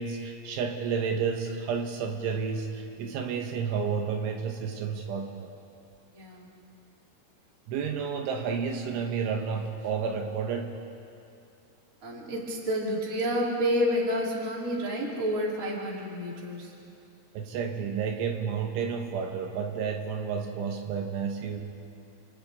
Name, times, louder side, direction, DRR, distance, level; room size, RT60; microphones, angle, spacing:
voice 1, 0.0-5.6 7.7-10.7 17.4-21.6, right 6 dB, 75° right, 3 dB, 3.5 m, -31 dB
voice 2, 6.1-6.5 12.0-16.7, equal, 20° right, -3 dB, 2.5 m, -29 dB
30.0 x 27.5 x 3.6 m, 2.6 s
omnidirectional pair, 5.8 m